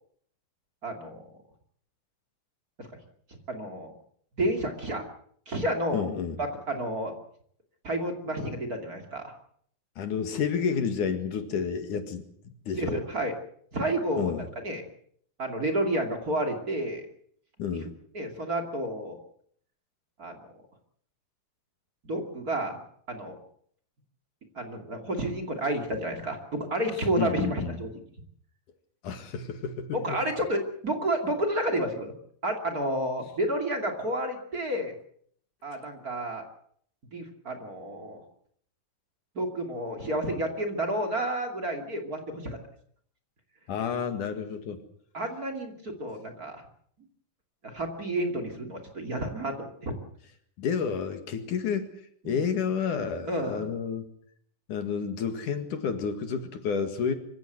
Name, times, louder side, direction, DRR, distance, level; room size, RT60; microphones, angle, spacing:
voice 1, 0.8-1.2 2.8-2.9 3.5-3.9 4.4-5.0 5.5-6.1 6.4-7.1 7.8-9.3 12.7-13.3 13.7-14.8 15.4-17.1 18.1-19.2 20.2-20.3 22.0-22.8 23.1-23.4 24.5-28.0 29.9-32.1 32.4-34.9 35.6-36.4 37.1-38.2 39.3-42.6 45.1-46.6 47.6-49.9 52.2-52.4 53.3-53.6, right 1 dB, 30° right, 4 dB, 2.8 m, -30 dB
voice 2, 5.9-6.4 10.0-12.2 12.7-13.0 14.2-14.5 17.6-17.9 27.2-27.8 29.0-30.2 43.7-44.8 50.6-51.9 52.3-54.0 54.7-57.1, left 6 dB, 70° left, 8 dB, 3.4 m, -30 dB
25.0 x 15.5 x 8.1 m, 0.63 s
omnidirectional pair, 3.9 m